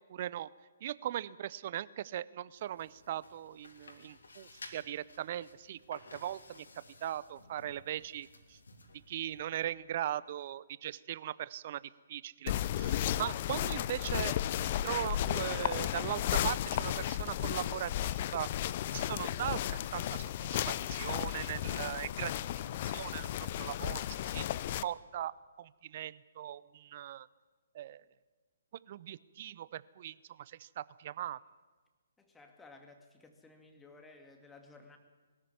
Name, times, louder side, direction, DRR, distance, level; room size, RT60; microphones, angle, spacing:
voice 1, 0.1-0.5 0.8-6.6 7.0-8.3 9.1-11.8 12.1-14.3 14.6-22.3 22.8-23.3 23.5-24.5 24.8-27.3 27.7-28.0 28.9-31.4, right 12 dB, 40° right, 20 dB, 0.6 m, -39 dB
sound 1, 2.5-9.6, left 2 dB, 70° left, 3.2 m, -55 dB
sound 2, 12.5-24.8, left 12 dB, 40° left, 0.6 m, -34 dB
voice 2, 32.2-35.0, left 3 dB, 10° left, 4 dB, 2.3 m, -56 dB
22.0 x 13.5 x 9.7 m, 1.3 s
figure-of-eight pair, 130°, 0 cm